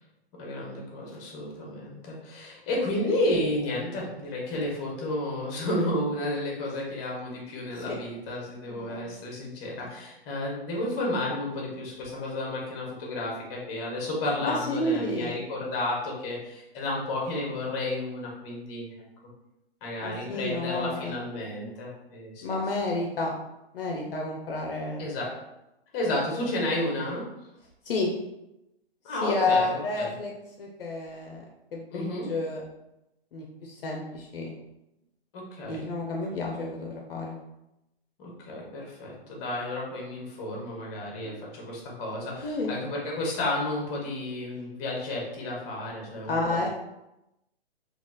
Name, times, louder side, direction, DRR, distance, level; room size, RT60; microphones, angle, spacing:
voice 1, 0.4-18.9 19.8-22.4 25.0-25.3 25.9-27.3 29.0-30.1 31.9-32.3 35.3-35.9 38.2-46.7, left 1 dB, 25° left, -2 dB, 0.8 m, -32 dB
voice 2, 8.7-9.0 14.7-15.3 20.0-21.1 22.4-23.3 23.7-25.1 27.8-28.1 29.1-30.3 30.6-31.4 31.7-32.6 33.3-34.6 35.7-37.4 41.2-41.4 42.4-42.7 46.3-46.7, left 2 dB, 60° left, 0 dB, 0.5 m, -30 dB
3.0 x 2.4 x 2.2 m, 0.91 s
hypercardioid pair, 130°, 31 cm